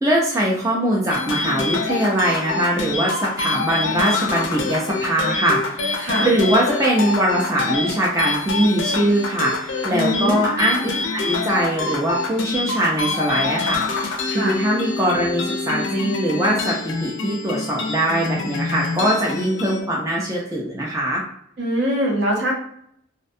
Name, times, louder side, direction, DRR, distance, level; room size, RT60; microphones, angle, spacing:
voice 1, 0.0-21.2, right 1 dB, 15° right, -4 dB, 0.3 m, -22 dB
sound 1, 1.1-19.8, left 3 dB, 60° left, 0.4 m, -26 dB
voice 2, 9.9-10.4 14.3-14.6 21.6-22.5, equal, 55° right, -1 dB, 0.7 m, -22 dB
2.5 x 2.1 x 2.5 m, 0.70 s
head